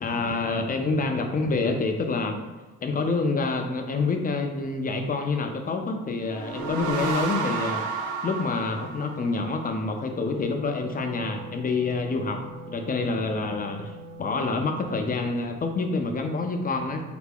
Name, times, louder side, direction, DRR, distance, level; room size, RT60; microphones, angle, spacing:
voice 1, 0.0-2.4 2.8-7.8 8.2-17.0, left 3 dB, 30° left, 4 dB, 0.4 m, -27 dB
sound 1, 6.2-9.7, right 5 dB, 85° right, 0.5 m, -31 dB
Wind instrument woodwind instrument, 9.9-15.0, right 1 dB, 20° right, 0.5 m, -43 dB
3.4 x 2.1 x 3.4 m, 1.2 s
cardioid pair, 90°, 30 cm